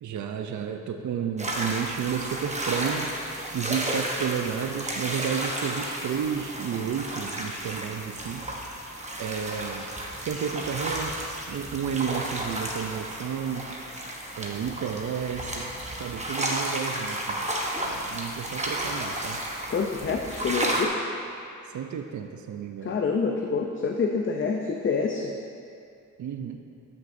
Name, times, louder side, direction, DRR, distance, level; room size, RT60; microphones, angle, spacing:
voice 1, 0.0-3.1 3.5-8.5 9.2-9.9 10.2-13.7 14.4-17.5 17.8-19.4 21.7-23.0 26.2-26.6, right 8 dB, 65° right, 5 dB, 0.5 m, -32 dB
sound 1, 1.4-20.9, right 1 dB, 20° right, 0.9 m, -32 dB
voice 2, 19.7-21.0 22.8-25.3, left 5 dB, 40° left, 2 dB, 0.5 m, -27 dB
13.0 x 6.0 x 2.6 m, 2.5 s
cardioid pair, 90°, 32 cm